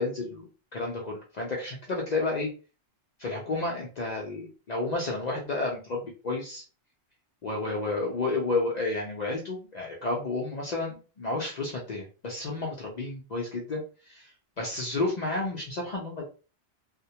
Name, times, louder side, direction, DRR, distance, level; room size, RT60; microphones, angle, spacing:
voice 1, 0.0-2.5 3.2-6.6 7.4-14.3 14.6-16.3, left 2 dB, 55° left, -2 dB, 0.5 m, -31 dB
2.1 x 2.1 x 2.7 m, 0.35 s
omnidirectional pair, 1.1 m